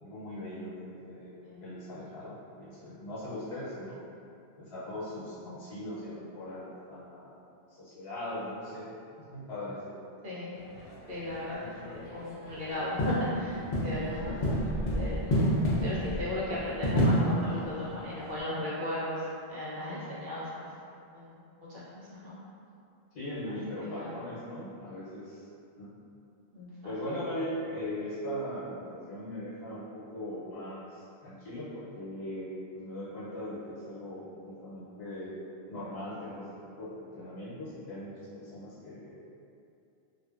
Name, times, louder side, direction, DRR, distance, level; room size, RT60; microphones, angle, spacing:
voice 1, 0.0-1.3 1.6-4.0 4.6-8.9 9.2-9.9 11.6-11.9 14.0-14.5 23.1-25.5 25.8-25.9 26.8-32.5 32.8-35.4 35.7-36.5 36.8-39.2, left 1 dB, 85° left, -10 dB, 1.0 m, -40 dB
voice 2, 10.2-10.6 11.1-11.6 11.8-14.2 14.5-14.6 14.9-15.3 15.8-20.7 21.1-21.4 21.7-22.4 23.5-23.6 23.8-24.2 26.5-26.9, left 1 dB, 65° right, -9 dB, 1.0 m, -36 dB
sound 1, 10.5-18.4, equal, 55° left, 0.6 m, -30 dB
2.5 x 2.5 x 2.3 m, 2.6 s
omnidirectional pair, 1.0 m